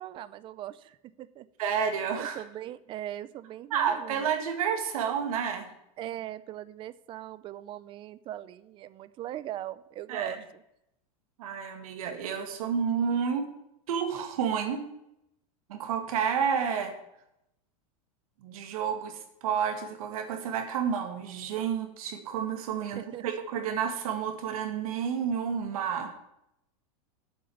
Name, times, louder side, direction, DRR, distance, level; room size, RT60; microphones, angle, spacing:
voice 1, 0.0-1.5 2.2-4.3 6.0-10.6 22.8-23.2, right 13 dB, 25° right, 16 dB, 0.5 m, -40 dB
voice 2, 1.6-2.4 3.7-5.7 10.1-10.4 11.4-13.5 13.9-14.8 15.7-16.9 18.4-26.1, right 7 dB, 75° right, 5 dB, 2.1 m, -30 dB
8.1 x 6.4 x 7.8 m, 0.81 s
supercardioid pair, 145°, 19 cm